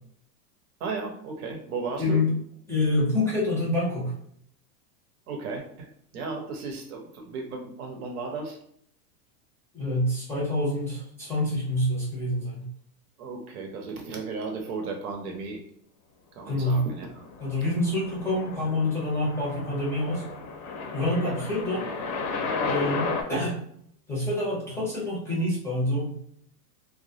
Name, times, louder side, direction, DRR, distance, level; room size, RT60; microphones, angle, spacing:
voice 1, 0.8-2.2 5.3-8.6 13.2-15.6 16.4-17.3 21.2-21.4, right 4 dB, 70° right, 3 dB, 0.8 m, -35 dB
voice 2, 2.0-2.3 2.7-4.1 9.7-12.7 16.5-16.8 17.4-20.2 20.9-21.9 22.6-23.6 24.1-26.1, left 1 dB, 5° left, -7 dB, 0.6 m, -27 dB
sound 1, 17.1-23.2, left 4 dB, 70° left, 0.7 m, -33 dB
2.2 x 2.0 x 2.7 m, 0.67 s
supercardioid pair, 130°, 45 cm